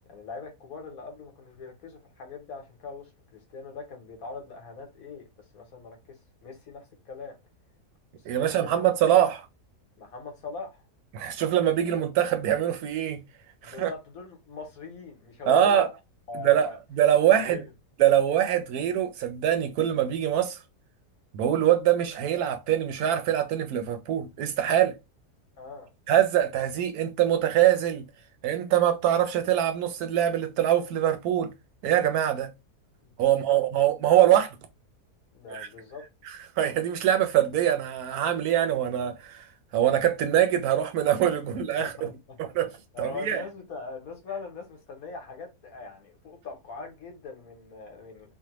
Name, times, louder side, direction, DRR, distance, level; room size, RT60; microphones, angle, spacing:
voice 1, 0.0-5.3 5.5-7.4 8.3-8.9 10.0-10.8 13.6-15.9 16.3-16.8 17.3-17.7 25.6-25.9 33.0-33.6 35.3-36.0 41.8-48.3, left 4 dB, 65° left, 1.3 m, -41 dB
voice 2, 8.3-9.5 11.1-13.2 13.6-13.9 15.5-15.9 16.3-17.6 18.0-20.6 21.3-25.0 26.1-28.0 28.4-31.5 31.8-32.5 33.2-34.6 35.5-35.7 36.3-39.5 39.7-42.1 42.4-42.7 43.0-43.4, right 11 dB, 75° right, 1.0 m, -23 dB
3.3 x 2.2 x 2.9 m
omnidirectional pair, 1.7 m